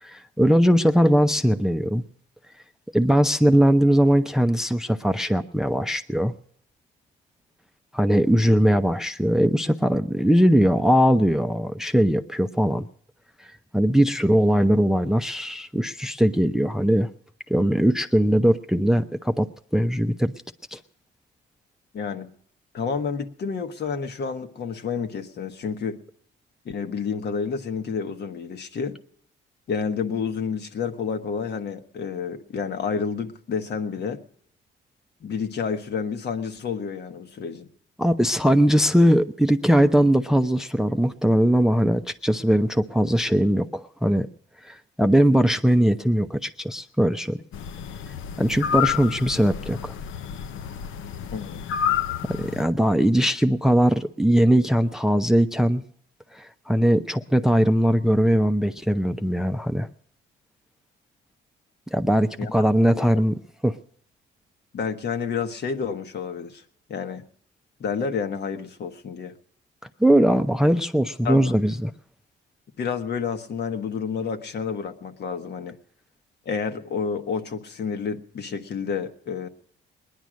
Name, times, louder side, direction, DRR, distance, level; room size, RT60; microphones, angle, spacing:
voice 1, 0.0-2.0 2.9-6.3 7.9-12.9 13.4-17.1 17.5-19.5 19.7-20.3 20.7-20.8 38.0-44.3 44.6-47.4 48.4-49.9 52.2-55.8 56.3-59.9 61.9-63.8 70.0-71.9, equal, ahead, 9 dB, 0.6 m, -20 dB
voice 2, 21.9-22.3 22.7-26.0 26.6-29.0 29.7-34.2 35.2-37.7 51.3-51.6 62.4-62.5 62.9-63.1 64.7-66.6 66.9-67.2 67.8-69.3 71.2-71.5 72.8-75.8 76.4-79.5, left 6 dB, 60° left, 7 dB, 1.3 m, -29 dB
sound 1, 47.5-52.6, left 8 dB, 80° left, 0.7 m, -29 dB
19.5 x 10.5 x 6.3 m, 0.62 s
cardioid pair, 90°, 20 cm